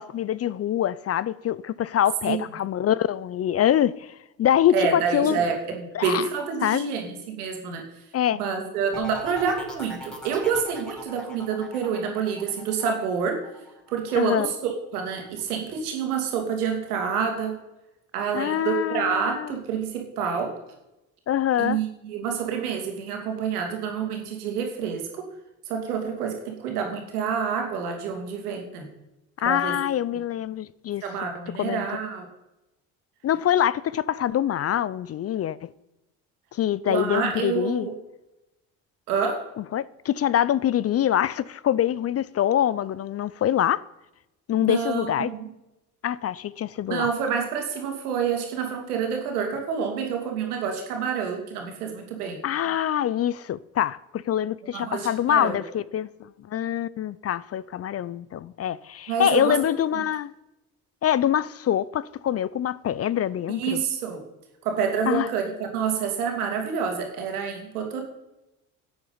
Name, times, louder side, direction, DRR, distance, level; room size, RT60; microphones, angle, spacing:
voice 1, 0.0-5.4 5.9-6.3 6.6-6.9 8.1-8.4 14.1-14.5 18.3-19.5 21.3-21.8 29.4-31.0 31.6-31.8 33.2-35.7 36.5-37.9 39.7-43.8 44.5-45.3 46.0-47.1 52.4-60.3 61.0-63.8 65.1-65.3, left 11 dB, 35° left, 0.4 m, -25 dB
voice 2, 4.7-7.8 8.3-13.4 13.9-14.5 14.9-17.6 18.1-20.5 21.6-25.3 25.7-28.9 29.4-29.7 31.0-32.3 36.8-38.0 39.1-39.5 44.6-45.5 46.9-52.4 54.7-55.6 59.1-59.6 63.6-64.2 64.6-68.0, right 6 dB, 90° right, 2.4 m, -28 dB
sound 1, 8.9-14.6 14.9-15.4, equal, ahead, 4.9 m, -42 dB
12.5 x 7.9 x 5.6 m
hypercardioid pair, 65°, 44 cm